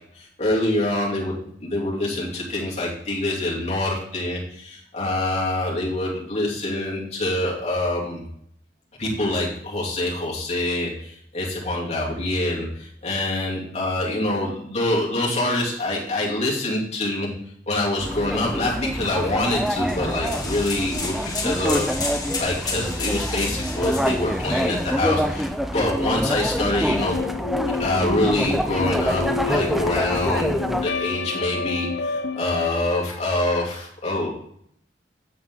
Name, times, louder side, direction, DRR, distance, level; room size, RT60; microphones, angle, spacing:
voice 1, 0.1-8.2 9.0-17.3 17.7-27.2 27.8-34.3, left 1 dB, 40° left, -4 dB, 2.9 m, -25 dB
sound 1, 18.0-30.9, equal, ahead, 0.6 m, -26 dB
sound 2, 19.7-25.0, left 4 dB, 25° left, 1.4 m, -32 dB
sound 3, 27.0-32.7, left 5 dB, 75° left, 0.4 m, -29 dB
8.7 x 7.3 x 3.8 m, 0.68 s
head